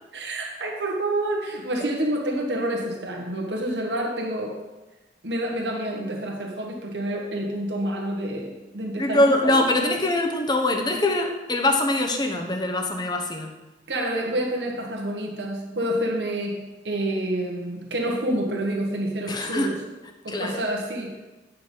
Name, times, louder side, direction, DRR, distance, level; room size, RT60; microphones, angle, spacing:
voice 1, 0.1-4.7 5.2-9.7 13.9-19.8 20.2-21.2, right 1 dB, 80° right, 0 dB, 1.3 m, -28 dB
voice 2, 9.0-13.5 19.3-19.7 20.3-20.6, left 1 dB, 25° left, 3 dB, 1.0 m, -23 dB
9.7 x 5.6 x 5.4 m, 1.1 s
head